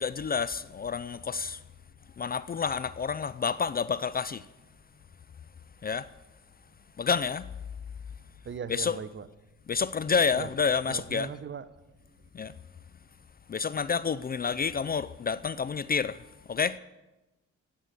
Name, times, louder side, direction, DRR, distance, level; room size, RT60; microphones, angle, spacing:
voice 1, 0.0-1.6 2.2-4.4 5.8-6.1 7.0-7.5 8.7-9.0 9.7-11.3 12.3-12.5 13.5-16.2 16.5-16.8, left 6 dB, 30° left, 0.5 m, -29 dB
voice 2, 8.4-9.3 10.3-10.5 10.9-11.7, right 7 dB, 40° right, 0.9 m, -38 dB
16.0 x 8.2 x 7.7 m
cardioid pair, 90°, 30 cm